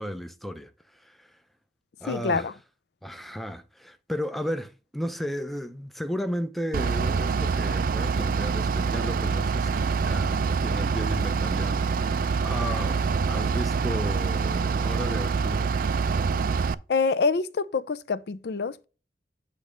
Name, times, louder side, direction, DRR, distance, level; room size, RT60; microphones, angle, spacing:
voice 1, 0.0-1.4 2.0-2.5 3.0-15.7, equal, ahead, 0.5 m, -34 dB
voice 2, 2.1-2.5 16.9-18.8, left 4 dB, 65° left, 0.4 m, -26 dB
Bus / Idling, 6.7-16.7, right 5 dB, 50° right, 0.3 m, -25 dB
8.3 x 3.2 x 5.0 m
head